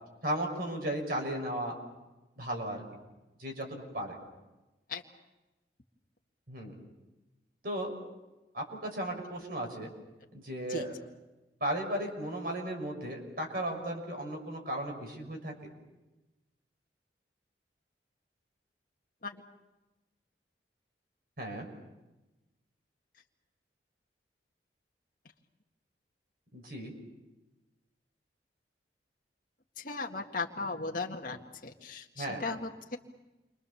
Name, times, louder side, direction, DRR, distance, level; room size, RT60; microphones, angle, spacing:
voice 1, 0.2-1.7 2.4-2.8 3.4-3.7 3.9-4.2 6.5-6.7 7.6-7.9 8.5-9.9 10.4-10.9 11.6-15.5 21.4-21.6 26.5-26.9 32.2-32.4, right 1 dB, 55° right, 2 dB, 6.3 m, -35 dB
voice 2, 29.8-33.0, left 3 dB, 50° left, 1 dB, 1.9 m, -37 dB
29.0 x 25.0 x 7.1 m, 1.0 s
head